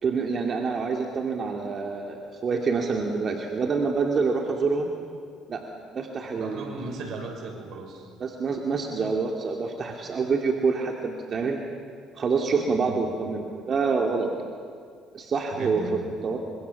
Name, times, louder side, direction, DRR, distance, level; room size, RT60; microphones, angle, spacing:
voice 1, 0.0-4.9 5.5-5.6 5.9-6.7 8.2-11.6 12.2-14.4 15.1-15.8 16.2-16.4, right 4 dB, 45° right, 2 dB, 2.5 m, -26 dB
voice 2, 6.4-8.1 12.8-13.1 15.5-16.1, right 3 dB, 60° right, 3 dB, 6.6 m, -36 dB
29.5 x 25.5 x 7.1 m, 2.3 s
cardioid pair, 95°, 0 cm